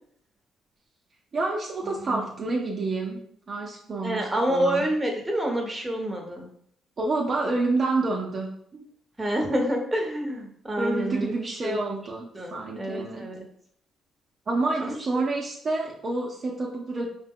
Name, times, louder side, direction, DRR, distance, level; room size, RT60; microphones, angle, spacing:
voice 1, 1.3-3.2 3.5-4.8 7.0-8.9 10.8-13.3 14.5-17.1, right 2 dB, 40° right, -2 dB, 0.6 m, -28 dB
voice 2, 4.0-6.5 9.2-12.0 12.3-13.4 14.8-14.9, right 1 dB, 10° right, 1 dB, 1.0 m, -28 dB
4.7 x 2.2 x 3.6 m, 0.65 s
cardioid pair, 90°, 0 cm